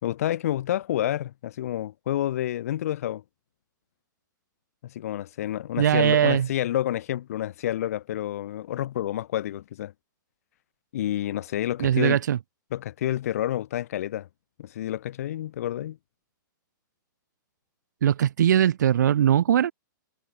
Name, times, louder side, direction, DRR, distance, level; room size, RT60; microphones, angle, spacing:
voice 1, 0.0-3.2 4.8-9.9 10.9-12.2 12.7-14.3 14.6-16.0, left 12 dB, 45° left, 3.4 m, -29 dB
voice 2, 5.8-6.5 11.8-12.4 18.0-19.7, right 10 dB, 60° right, 1.2 m, -20 dB
hypercardioid pair, 175°, 11 cm